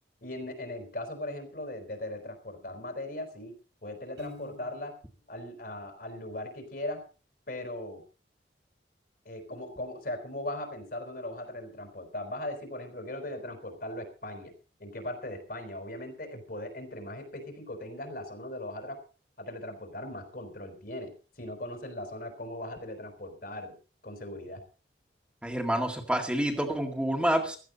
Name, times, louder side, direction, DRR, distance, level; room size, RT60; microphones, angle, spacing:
voice 1, 0.2-4.9 5.3-7.0 7.5-8.0 9.2-14.5 14.8-19.0 19.4-23.8 24.0-24.6, left 1 dB, 55° left, 6 dB, 4.1 m, -39 dB
Piano, 4.2-5.2, left 3 dB, 80° right, 7.2 m, -47 dB
voice 2, 25.4-27.6, right 1 dB, 5° right, 2 dB, 2.0 m, -28 dB
16.0 x 13.5 x 4.0 m, 0.36 s
head